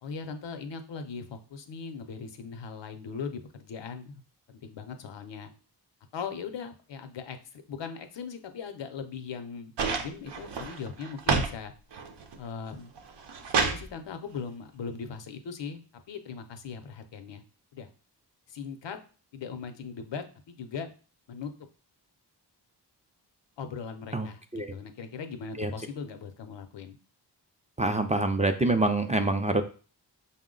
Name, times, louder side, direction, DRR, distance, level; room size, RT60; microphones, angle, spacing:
voice 1, 0.0-4.2 4.5-5.5 6.1-11.7 12.4-12.9 13.6-15.8 16.1-17.4 17.7-17.9 18.5-19.0 19.3-20.9 21.3-21.5 23.6-27.0, left 6 dB, 90° left, 8 dB, 0.6 m, -39 dB
sound 1, 9.8-11.6 11.9-12.5 13.0-13.8 15.0-15.1, right 5 dB, 75° right, 0.7 m, -29 dB
voice 2, 24.1-24.7 25.6-25.7 27.8-29.6, right 2 dB, 20° right, 7 dB, 0.4 m, -26 dB
5.5 x 2.1 x 3.7 m, 0.37 s
wide cardioid pair, 70°, 42 cm